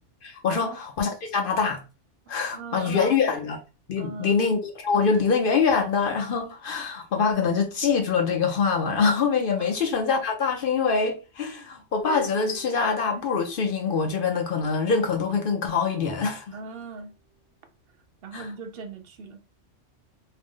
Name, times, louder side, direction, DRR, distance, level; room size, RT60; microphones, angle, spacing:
voice 1, 0.2-1.8 2.3-3.6 3.9-16.5 18.3-18.5, left 5 dB, 55° left, 0.7 m, -24 dB
voice 2, 2.2-3.2 4.0-4.4 9.5-9.7 16.5-17.1 18.2-19.4, right 4 dB, 60° right, 0.7 m, -39 dB
sound 1, 12.1-14.5 15.5-15.7, right 8 dB, 90° right, 1.0 m, -44 dB
2.7 x 2.0 x 3.6 m
omnidirectional pair, 1.2 m